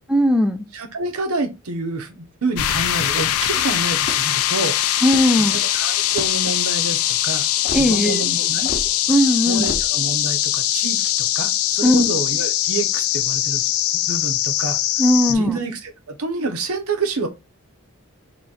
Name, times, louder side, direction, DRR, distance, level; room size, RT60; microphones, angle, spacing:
voice 1, 0.1-0.7 5.0-5.6 7.7-8.2 9.1-9.7 11.8-12.1 15.0-15.5, left 1 dB, 5° right, 0.5 m, -17 dB
voice 2, 0.7-4.8 5.4-5.5 5.7-7.5 7.8-8.7 9.5-13.7 14.1-14.8 15.3-17.3, right 3 dB, 90° right, 0.8 m, -28 dB
sound 1, 2.5-15.3, left 12 dB, 80° left, 0.4 m, -21 dB
sound 2, 4.0-4.4 5.0-5.5 6.1-6.5 7.6-7.9 8.6-8.9 9.6-9.9, left 2 dB, 40° left, 0.7 m, -31 dB
3.1 x 2.7 x 4.1 m
head